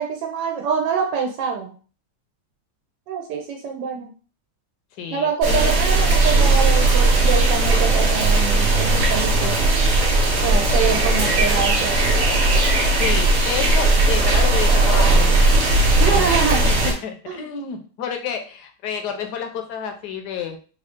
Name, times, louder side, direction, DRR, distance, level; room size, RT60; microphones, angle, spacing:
voice 1, 0.0-1.7 3.1-4.1 5.1-9.6 10.4-12.1 16.0-16.7 17.3-17.5, right 6 dB, 90° right, 2 dB, 1.3 m, -25 dB
voice 2, 5.0-5.7 13.0-15.5 16.1-16.4 16.6-20.6, left 7 dB, 75° left, 5 dB, 1.2 m, -29 dB
sound 1, 5.4-16.9, right 2 dB, 50° right, 1.1 m, -17 dB
3.6 x 2.4 x 3.6 m, 0.39 s
omnidirectional pair, 1.8 m